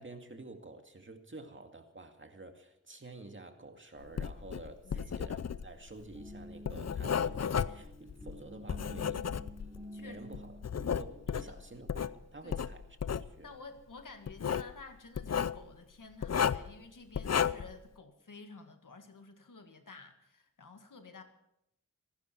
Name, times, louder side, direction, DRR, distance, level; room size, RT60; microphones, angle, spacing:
voice 1, 0.0-9.3 10.0-10.6 11.0-13.5, right 2 dB, 40° right, 5 dB, 2.2 m, -50 dB
Writing, 4.1-9.9 10.3-12.1 12.5-13.3 14.3-14.7 15.1-15.6 16.2-16.7 17.1-17.7, left 7 dB, 55° left, 0.6 m, -33 dB
sound 1, 5.8-11.4, equal, 5° right, 3.5 m, -49 dB
voice 2, 13.1-21.2, left 4 dB, 85° left, 6 dB, 1.9 m, -52 dB
27.0 x 11.5 x 4.5 m, 0.80 s
wide cardioid pair, 60°, 31 cm